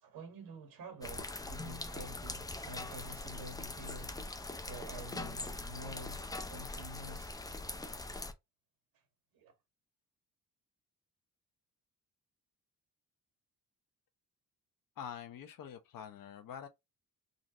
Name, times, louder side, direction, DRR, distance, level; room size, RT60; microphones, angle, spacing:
voice 1, 0.0-4.2 4.7-7.3 9.3-9.5, right 1 dB, 80° right, 1.9 m, -49 dB
sound 1, 1.0-8.3, left 2 dB, 10° left, 0.5 m, -42 dB
voice 2, 15.0-16.7, left 8 dB, 70° left, 0.9 m, -46 dB
4.0 x 2.5 x 3.0 m
cardioid pair, 130°, 35 cm